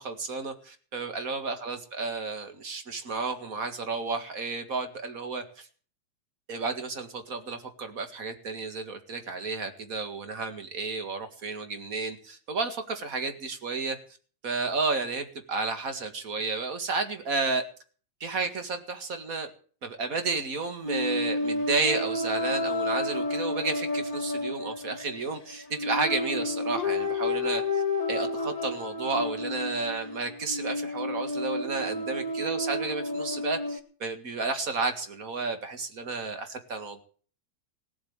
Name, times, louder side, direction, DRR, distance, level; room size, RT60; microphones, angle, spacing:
voice 1, 0.0-5.7 6.5-14.0 14.4-17.6 18.2-19.5 19.8-27.8 28.1-37.0, right 4 dB, 35° right, 8 dB, 1.9 m, -32 dB
sound 1, 20.8-33.8, left 2 dB, 15° left, 1.4 m, -31 dB
17.5 x 7.7 x 8.8 m, 0.43 s
omnidirectional pair, 3.4 m